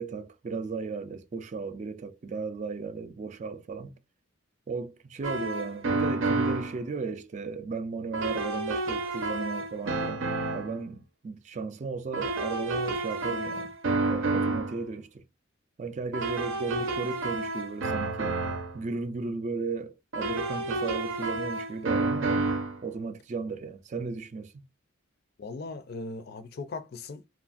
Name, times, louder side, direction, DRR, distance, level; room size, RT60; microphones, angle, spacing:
voice 1, 0.0-3.9 4.7-13.7 14.1-15.2 15.8-18.4 18.7-22.5 22.8-24.5, right 4 dB, 35° right, 0.3 m, -35 dB
sound 1, 5.2-6.8 8.1-10.8 12.1-14.8 16.1-18.8 20.1-22.8, right 3 dB, 75° right, 0.7 m, -30 dB
voice 2, 25.4-27.3, left 3 dB, 50° left, 0.4 m, -38 dB
3.0 x 2.4 x 2.4 m
head